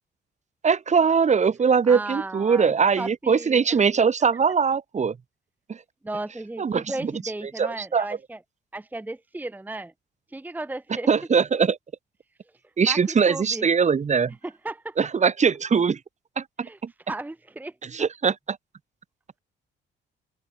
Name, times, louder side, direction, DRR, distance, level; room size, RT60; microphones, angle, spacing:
voice 1, 0.6-5.1 5.7-5.8 6.6-7.1 7.6-8.1 11.1-11.8 12.8-14.3 15.0-16.0 16.4-16.5 16.8-16.9 17.9-18.6, right 6 dB, 35° right, 1.3 m, -21 dB
voice 2, 1.8-3.8 6.0-8.4 8.7-9.9 10.3-11.1 12.8-13.7 14.4-15.0 16.6-16.8 17.1-17.7, right 2 dB, 10° right, 0.7 m, -35 dB
cardioid pair, 90°, 20 cm